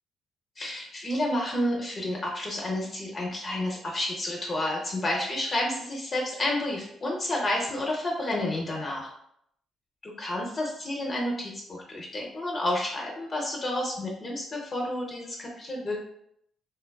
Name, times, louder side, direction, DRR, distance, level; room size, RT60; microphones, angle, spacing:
voice 1, 0.6-9.1 10.0-16.0, left 1 dB, 40° left, -2 dB, 0.6 m, -30 dB
3.1 x 2.2 x 2.2 m, 0.74 s
cardioid pair, 90°, 0 cm